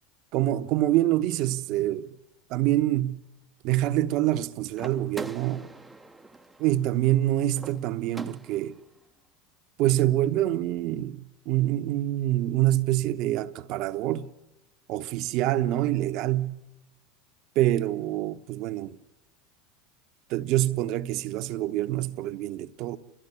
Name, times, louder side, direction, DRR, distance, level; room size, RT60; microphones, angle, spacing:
voice 1, 0.3-2.1 2.5-3.2 3.6-5.7 6.6-8.8 9.8-14.3 14.9-16.6 17.5-19.0 20.3-23.0, right 14 dB, 55° right, 1.0 m, -26 dB
sound 1, 4.7-8.8, right 2 dB, 10° right, 0.7 m, -43 dB
29.5 x 13.5 x 9.8 m
supercardioid pair, 105°, 0 cm